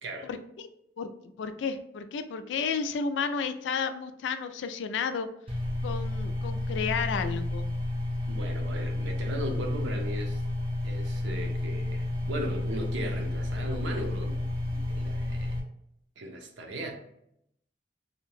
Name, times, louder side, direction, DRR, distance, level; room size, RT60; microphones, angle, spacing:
voice 1, 0.2-0.7 1.0-1.1 1.4-5.3 5.8-7.7, left 5 dB, 70° left, 10 dB, 0.3 m, -32 dB
sound 1, 5.5-15.6, left 1 dB, 30° right, 0.6 m, -31 dB
voice 2, 8.3-10.4 10.8-14.3 14.9-15.6 16.2-16.9, right 1 dB, 90° right, 3 dB, 0.6 m, -37 dB
2.7 x 2.1 x 3.0 m, 0.74 s
head